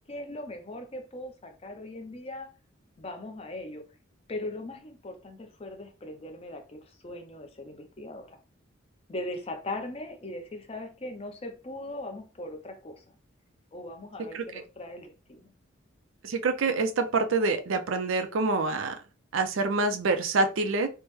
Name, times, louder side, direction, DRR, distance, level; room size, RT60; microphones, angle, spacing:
voice 1, 0.1-2.5 3.0-3.9 4.3-8.4 9.1-13.0 13.7-15.5, left 1 dB, 30° left, 5 dB, 0.5 m, -39 dB
voice 2, 16.2-18.9 19.3-20.9, right 3 dB, 75° right, 7 dB, 0.5 m, -26 dB
3.3 x 2.1 x 3.1 m, 0.32 s
head